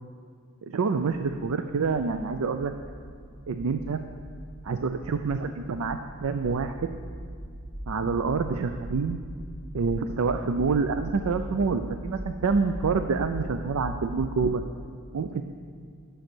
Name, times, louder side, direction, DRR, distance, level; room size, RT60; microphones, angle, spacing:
voice 1, 0.6-2.7 3.5-4.0 4.6-6.9 7.9-9.2 9.7-14.6 15.1-15.4, right 4 dB, 70° right, 8 dB, 0.4 m, -27 dB
sound 1, 1.9-14.4, equal, 35° right, 2.4 m, -40 dB
10.5 x 6.5 x 6.1 m, 2.1 s
head